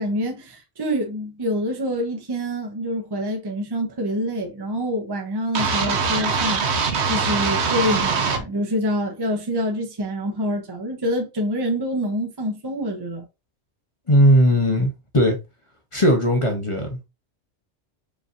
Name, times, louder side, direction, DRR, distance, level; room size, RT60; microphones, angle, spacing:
voice 1, 0.0-6.6 7.0-13.3, equal, 25° right, 0.7 m, -26 dB
sound 1, 5.6-8.4, right 5 dB, 70° right, 1.0 m, -22 dB
voice 2, 14.1-15.4 15.9-17.0, equal, 30° left, 0.8 m, -18 dB
5.0 x 3.1 x 2.6 m
omnidirectional pair, 1.2 m